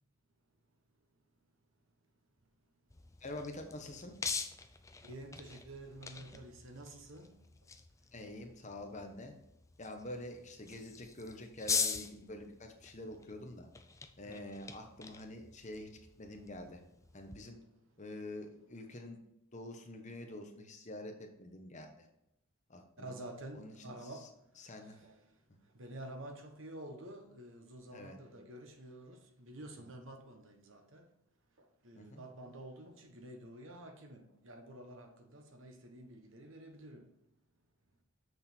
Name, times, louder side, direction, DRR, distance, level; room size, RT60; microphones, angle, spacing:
sound 1, 2.9-17.4, left 5 dB, 15° left, 0.4 m, -43 dB
voice 1, 3.2-4.1 8.1-9.3 9.8-13.7 14.2-16.8 17.1-17.6 18.0-19.2 19.5-22.1 22.7-23.1 23.5-24.3 24.6-25.0 27.9-28.2 32.0-32.2, left 1 dB, 35° left, 1.1 m, -47 dB
voice 2, 5.0-7.4 14.2-14.5 23.0-24.3 25.0-25.2 25.7-31.1 31.8-37.1, right 1 dB, 60° right, 1.2 m, -49 dB
7.3 x 6.4 x 4.4 m
head